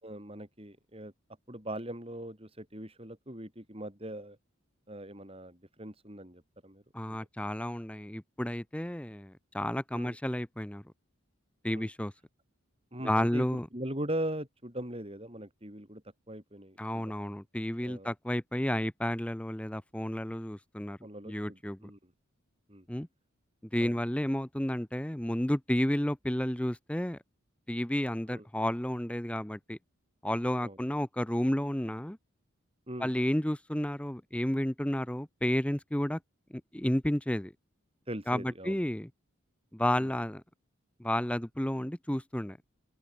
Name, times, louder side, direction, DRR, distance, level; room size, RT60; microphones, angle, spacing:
voice 1, 0.0-1.1 1.5-4.4 4.9-6.8 9.9-10.2 11.7-11.9 12.9-13.4 13.7-16.0 16.3-17.1 17.8-18.1 21.0-22.1 22.7-22.8 23.8-24.0 28.3-28.4 30.6-30.8 32.9-33.1 38.1-38.8 39.9-40.1, right 1 dB, 25° right, 5.0 m, -40 dB
voice 2, 6.9-10.8 11.6-12.1 13.0-13.7 16.8-21.0 21.3-21.8 22.9-23.1 23.7-27.2 27.7-29.8 30.2-32.2 33.0-36.2 36.5-37.5 38.3-39.1 39.7-40.4 41.0-42.6, left 1 dB, 5° left, 0.7 m, -31 dB
open air
head